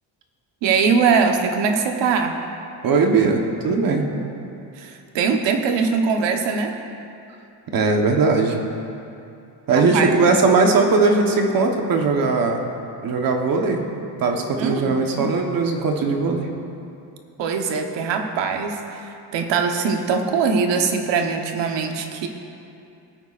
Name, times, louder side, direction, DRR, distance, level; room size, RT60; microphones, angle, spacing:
voice 1, 0.6-2.4 4.8-6.8 9.7-10.3 14.6-15.3 17.4-22.3, right 5 dB, 90° right, 4 dB, 1.1 m, -22 dB
voice 2, 2.8-4.1 7.7-8.6 9.7-12.7 13.0-13.9 14.2-16.5, right 4 dB, 55° right, 3 dB, 1.2 m, -19 dB
19.5 x 9.1 x 2.5 m, 2.7 s
cardioid pair, 155°, 42 cm